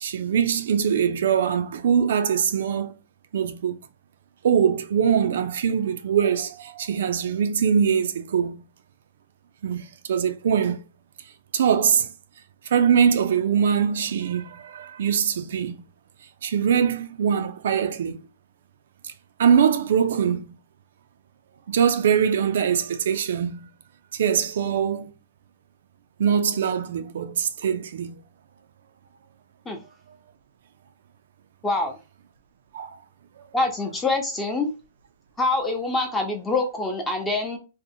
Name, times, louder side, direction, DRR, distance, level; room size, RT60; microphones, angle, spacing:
voice 1, 0.0-3.0 3.3-3.8 4.4-8.6 9.6-10.8 11.5-12.1 12.7-15.8 16.4-18.3 19.0-19.1 19.4-20.5 21.7-23.7 24.1-25.1 26.2-28.2 32.7-33.0, right 7 dB, 75° right, 0.3 m, -22 dB
voice 2, 31.6-32.0 33.5-34.7 35.4-37.6, left 2 dB, 10° left, 0.7 m, -25 dB
2.6 x 2.1 x 2.6 m
hypercardioid pair, 130°, 0 cm